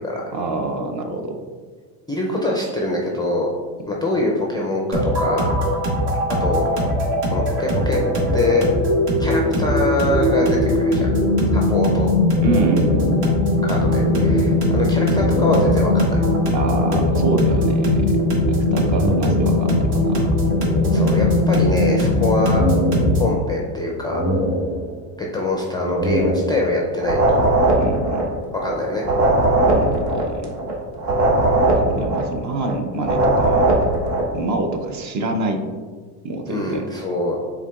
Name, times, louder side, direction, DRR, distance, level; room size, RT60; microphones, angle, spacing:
voice 1, 0.3-1.4 12.4-13.3 16.5-18.0 18.5-20.4 27.8-28.3 29.6-30.6 31.8-33.7 34.3-35.6 36.2-36.9, right 2 dB, 40° right, 5 dB, 0.6 m, -26 dB
voice 2, 2.1-3.5 3.9-5.5 6.4-6.8 7.3-8.0 8.3-8.6 9.2-11.1 11.5-12.1 13.6-16.2 20.9-22.6 23.2-24.2 25.2-27.4 28.6-29.1 36.5-37.4, left 2 dB, 10° left, -2 dB, 0.3 m, -24 dB
sound 1, 4.9-23.4, left 1 dB, 55° right, 1.4 m, -19 dB
sound 2, 7.7-10.5 10.7-11.9 12.3-17.7 18.7-20.0 20.4-21.7 22.1-23.6 23.9-25.2 25.7-27.0, equal, 20° right, 1.4 m, -27 dB
sound 3, 27.0-34.3, right 2 dB, 70° right, 1.1 m, -19 dB
5.7 x 3.8 x 2.3 m, 1.5 s
supercardioid pair, 100°, 47 cm